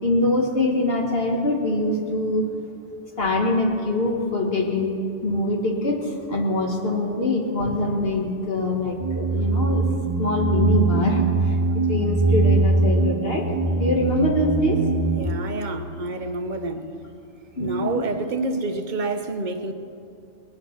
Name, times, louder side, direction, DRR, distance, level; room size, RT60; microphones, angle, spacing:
voice 1, 0.0-2.4 3.2-4.9 5.2-9.8 10.2-11.3 11.7-13.5 13.7-14.8 17.6-18.0, left 2 dB, 55° left, 1.9 m, -23 dB
sound 1, 9.0-15.3, right 3 dB, 25° right, 0.5 m, -22 dB
voice 2, 15.2-16.9 17.6-19.7, right 3 dB, 45° right, 1.0 m, -28 dB
20.0 x 9.6 x 5.9 m
omnidirectional pair, 1.2 m